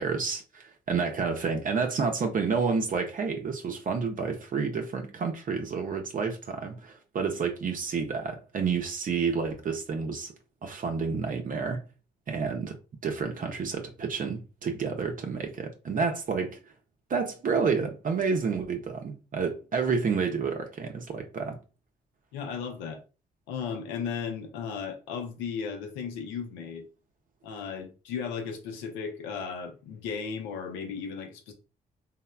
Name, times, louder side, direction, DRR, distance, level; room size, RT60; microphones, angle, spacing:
voice 1, 0.0-10.3 10.6-11.8 12.3-16.6 17.1-21.6, right 5 dB, 45° right, 0.5 m, -30 dB
voice 2, 22.3-23.0 23.5-26.9 27.4-31.5, left 6 dB, 85° left, 0.5 m, -35 dB
3.0 x 2.1 x 2.2 m
hypercardioid pair, 50°, 19 cm